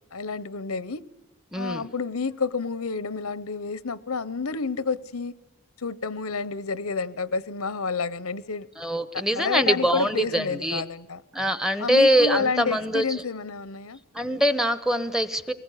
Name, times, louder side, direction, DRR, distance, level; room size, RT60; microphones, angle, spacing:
voice 1, 0.1-1.0 1.5-5.3 5.8-8.7 9.3-11.2 11.8-14.0, left 4 dB, 85° left, 1.0 m, -29 dB
voice 2, 1.5-1.9 8.8-10.8 11.3-13.2 14.1-15.5, equal, ahead, 0.9 m, -23 dB
23.5 x 20.0 x 10.0 m
head